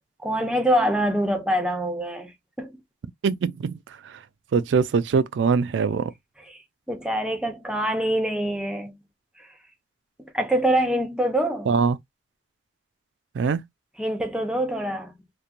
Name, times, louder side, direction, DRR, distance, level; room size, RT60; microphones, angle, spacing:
voice 1, 0.2-2.3 2.6-2.8 6.5-6.6 6.9-8.9 9.4-9.5 10.2-11.7 14.0-15.1, right 1 dB, 5° right, 0.6 m, -25 dB
voice 2, 3.2-3.8 4.0-4.1 4.5-6.1 11.7-12.0 13.4-13.6, right 5 dB, 90° right, 0.3 m, -22 dB
2.9 x 2.1 x 2.5 m
head